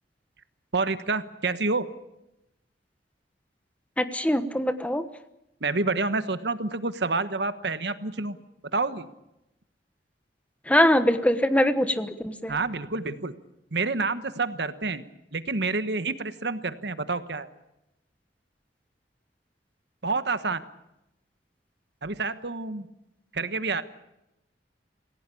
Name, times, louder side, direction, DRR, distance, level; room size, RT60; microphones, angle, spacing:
voice 1, 0.7-1.9 5.6-8.4 8.7-9.1 12.5-13.4 13.7-15.0 15.3-17.5 20.0-20.6 22.0-22.9 23.3-23.8, right 3 dB, 70° right, 11 dB, 1.3 m, -28 dB
voice 2, 4.0-5.0 10.7-12.5, left 1 dB, 10° left, 10 dB, 1.2 m, -22 dB
27.5 x 16.5 x 8.5 m, 0.90 s
head